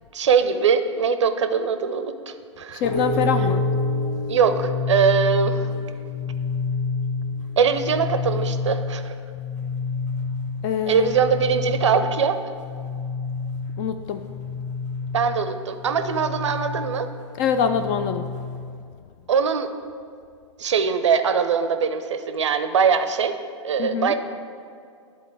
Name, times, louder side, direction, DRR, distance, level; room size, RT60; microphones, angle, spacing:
voice 1, 0.1-2.8 4.3-5.7 7.6-9.2 10.9-12.4 15.1-17.1 19.3-19.7 20.6-23.4 23.6-24.1, right 6 dB, 70° right, 10 dB, 0.5 m, -22 dB
voice 2, 2.7-3.6 10.6-11.2 13.8-14.2 17.4-18.2 23.8-24.1, left 7 dB, 35° left, 9 dB, 0.3 m, -24 dB
sound 1, 2.8-18.7, left 4 dB, 75° left, 1.7 m, -28 dB
10.5 x 3.9 x 4.6 m, 2.3 s
figure-of-eight pair, 100°, 16 cm